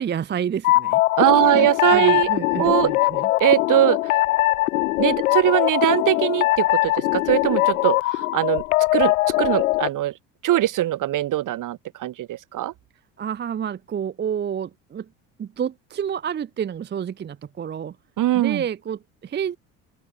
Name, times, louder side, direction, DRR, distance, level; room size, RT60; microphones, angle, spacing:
voice 1, 0.0-1.0 1.4-3.3 13.2-15.1 15.4-18.0 18.3-19.6, right 8 dB, 25° right, 0.6 m, -29 dB
sound 1, 0.6-9.9, left 18 dB, 85° left, 0.7 m, -21 dB
voice 2, 1.2-2.3 2.6-2.9 3.4-4.1 5.0-8.6 8.9-10.1 10.4-12.7 18.2-18.6, right 14 dB, 50° right, 1.3 m, -21 dB
open air
hypercardioid pair, 70°, 40 cm